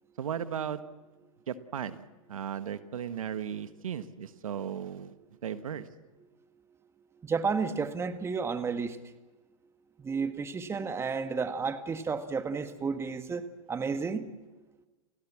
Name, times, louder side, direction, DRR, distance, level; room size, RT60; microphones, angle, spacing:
voice 1, 0.2-0.8 1.5-2.0 2.3-5.2 5.4-5.9, right 8 dB, 80° right, 11 dB, 1.4 m, -36 dB
voice 2, 7.2-9.0 10.0-13.4 13.7-14.3, right 5 dB, 15° right, 9 dB, 1.6 m, -31 dB
30.0 x 16.5 x 7.4 m, 1.2 s
hypercardioid pair, 120°, 17 cm